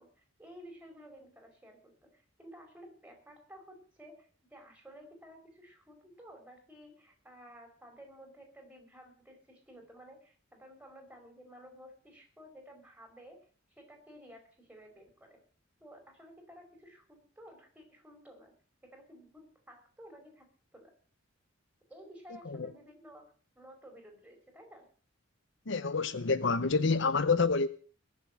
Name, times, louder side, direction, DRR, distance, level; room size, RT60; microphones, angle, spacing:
voice 1, 0.0-13.5 13.8-15.4 15.8-18.5 18.8-20.5 20.7-20.9 21.9-24.9, equal, 5° right, 4.9 m, -54 dB
voice 2, 25.7-27.7, left 4 dB, 60° left, 0.8 m, -27 dB
21.0 x 7.4 x 7.6 m
head